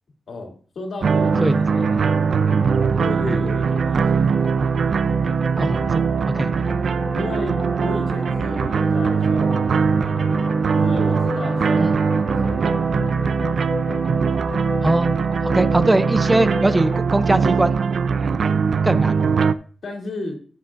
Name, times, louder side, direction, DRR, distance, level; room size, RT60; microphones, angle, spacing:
voice 1, 0.3-2.0 2.9-4.4 7.1-10.5 10.8-12.1 12.4-13.5 18.4-18.8 19.8-20.3, left 2 dB, 75° left, 1 dB, 2.7 m, -33 dB
sound 1, 1.0-19.5, right 5 dB, 70° right, 0.4 m, -21 dB
sound 2, 1.2-17.0, left 2 dB, 10° left, 1.3 m, -33 dB
voice 2, 5.5-6.0 6.3-6.5 11.8-12.0 14.8-15.2 15.4-18.4 18.8-19.2, right 2 dB, 20° right, 12 dB, 0.5 m, -21 dB
13.5 x 8.3 x 2.5 m, 0.42 s
wide cardioid pair, 120°, 0 cm